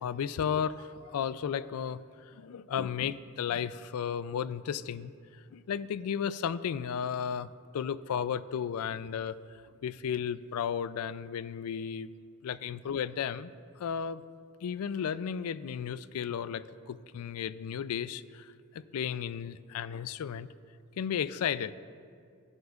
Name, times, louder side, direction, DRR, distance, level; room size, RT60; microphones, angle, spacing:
voice 1, 0.0-5.1 5.5-9.4 9.8-12.1 12.4-13.5 13.8-14.2 14.6-20.5 21.0-21.7, left 8 dB, 80° left, 0.3 m, -34 dB
17.0 x 7.9 x 2.4 m
head